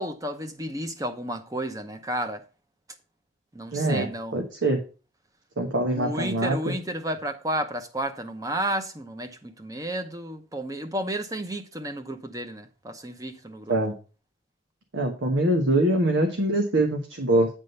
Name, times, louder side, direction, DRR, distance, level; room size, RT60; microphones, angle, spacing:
voice 1, 0.0-2.4 3.5-4.4 5.9-13.7, right 1 dB, 20° right, 0.8 m, -32 dB
voice 2, 3.7-4.1 4.3-4.8 5.6-6.7 13.7-13.9 14.9-17.5, right 1 dB, 75° right, 1.2 m, -23 dB
9.5 x 3.7 x 6.6 m
head